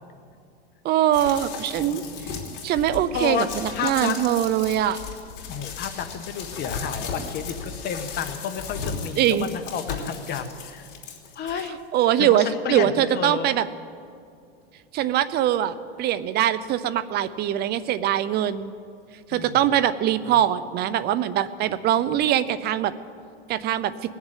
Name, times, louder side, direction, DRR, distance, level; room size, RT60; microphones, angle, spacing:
voice 1, 0.8-2.0 2.6-3.5 3.8-5.0 9.2-9.5 11.9-13.7 14.9-18.7 19.3-22.9 23.5-23.9, right 11 dB, 30° right, 15 dB, 0.6 m, -22 dB
sound 1, 1.1-11.7 12.2-12.3, left 5 dB, 55° left, 3.1 m, -36 dB
voice 2, 3.1-4.2 5.5-10.9 11.3-11.8 12.2-13.5 19.3-19.6 20.2-20.4, left 7 dB, 30° left, 8 dB, 1.3 m, -31 dB
19.0 x 7.3 x 9.1 m, 2.4 s
hypercardioid pair, 125°, 32 cm